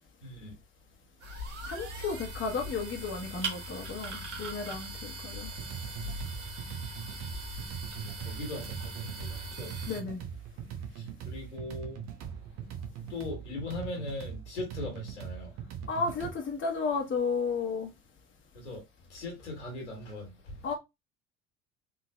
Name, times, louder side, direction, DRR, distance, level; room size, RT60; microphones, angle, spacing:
voice 1, 0.2-0.5 4.6-4.9 7.9-9.8 10.9-12.0 13.1-15.5 18.5-18.8 19.1-20.6, left 2 dB, 85° left, 1.7 m, -40 dB
sound 1, 1.2-10.0, right 1 dB, 85° right, 1.1 m, -40 dB
voice 2, 1.6-5.5 9.9-10.2 15.9-17.9 20.6-20.7, left 4 dB, 35° left, 1.1 m, -33 dB
sound 2, 5.4-16.3, right 8 dB, 50° right, 0.9 m, -41 dB
3.9 x 3.2 x 2.2 m
hypercardioid pair, 60°, 34 cm